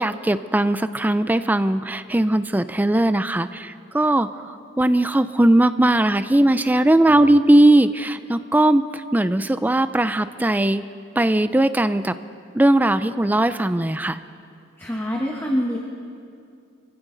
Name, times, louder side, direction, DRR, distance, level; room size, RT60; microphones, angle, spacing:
voice 1, 0.0-4.3 4.8-10.8 11.2-12.2 12.5-14.2, right 1 dB, 10° right, 12 dB, 0.4 m, -19 dB
voice 2, 14.8-15.8, equal, 10° left, -1 dB, 1.1 m, -25 dB
24.5 x 15.0 x 3.9 m, 2.4 s
head